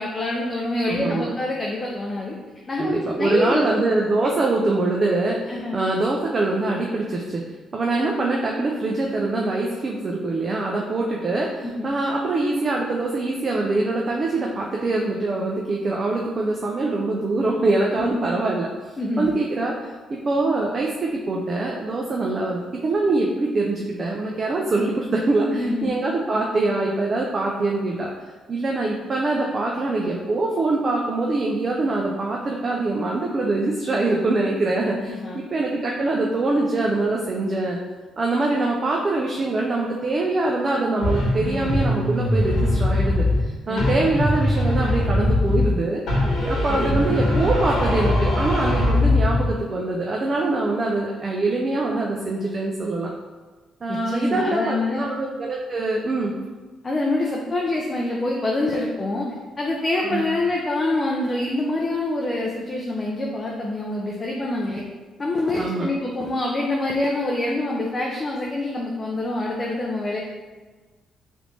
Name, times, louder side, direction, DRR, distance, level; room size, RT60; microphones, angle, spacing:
voice 1, 0.0-2.3 2.7-3.6 4.2-4.3 5.5-5.8 11.6-11.9 18.0-18.3 19.0-19.3 25.5-25.9 35.1-35.4 43.7-44.1 46.7-47.1 53.9-55.0 56.8-59.3 59.6-64.8 65.2-70.2, left 2 dB, 30° left, -2 dB, 0.4 m, -26 dB
voice 2, 0.9-1.3 2.8-7.4 7.7-18.7 19.2-28.1 28.5-37.8 38.2-46.0 46.4-53.1 53.8-56.3 60.1-60.2 65.6-65.9, right 2 dB, 40° right, -1 dB, 0.4 m, -24 dB
sound 1, 41.0-43.5 43.8-45.8 46.1-49.5, left 1 dB, 70° left, 1.1 m, -21 dB
3.3 x 2.5 x 3.1 m, 1.3 s
cardioid pair, 90°, 0 cm